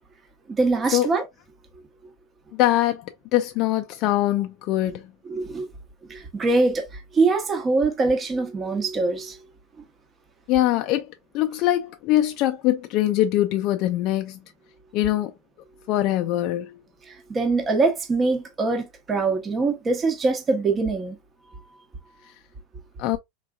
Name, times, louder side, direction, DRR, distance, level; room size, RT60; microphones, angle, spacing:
voice 1, 0.5-1.2 5.2-5.7 6.1-9.4 17.1-21.2, right 3 dB, 25° right, 0.9 m, -23 dB
voice 2, 2.5-5.1 10.5-14.4 14.9-15.3 15.9-16.7 23.0-23.2, left 14 dB, 50° left, 0.3 m, -23 dB
3.6 x 2.8 x 2.2 m
supercardioid pair, 125°, 0 cm